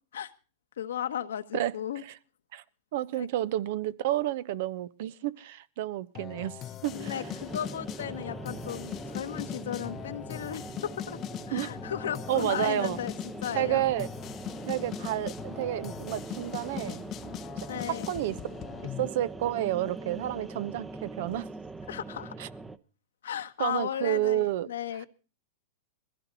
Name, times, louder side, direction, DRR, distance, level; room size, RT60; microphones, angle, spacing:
voice 1, 0.8-2.0 3.2-3.3 6.9-11.2 11.5-13.1 13.4-13.8 17.7-18.1 21.9-22.3 23.2-25.1, left 10 dB, 80° left, 1.3 m, -35 dB
voice 2, 2.9-7.1 11.5-11.7 12.3-13.0 13.5-14.1 14.7-17.1 17.6-18.4 19.0-21.5 22.4-22.5 23.6-24.7, right 13 dB, 60° right, 0.9 m, -30 dB
sound 1, 6.2-19.1, left 12 dB, 35° left, 0.7 m, -40 dB
sound 2, 6.9-22.8, right 3 dB, 10° right, 0.9 m, -42 dB
21.0 x 15.5 x 4.1 m
hypercardioid pair, 120°, 0 cm